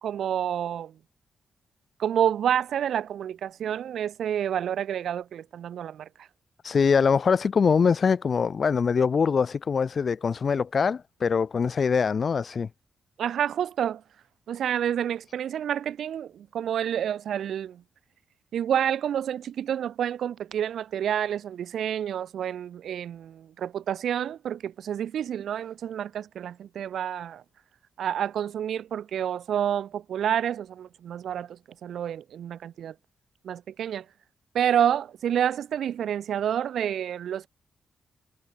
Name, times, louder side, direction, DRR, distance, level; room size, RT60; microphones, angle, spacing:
voice 1, 0.0-0.9 2.0-6.1 13.2-14.0 14.5-17.8 18.5-27.4 28.0-32.9 33.4-34.0 34.5-37.5, right 9 dB, 80° right, 2.7 m, -29 dB
voice 2, 6.6-12.7, left 6 dB, 40° left, 0.7 m, -23 dB
wide cardioid pair, 150°, 0 cm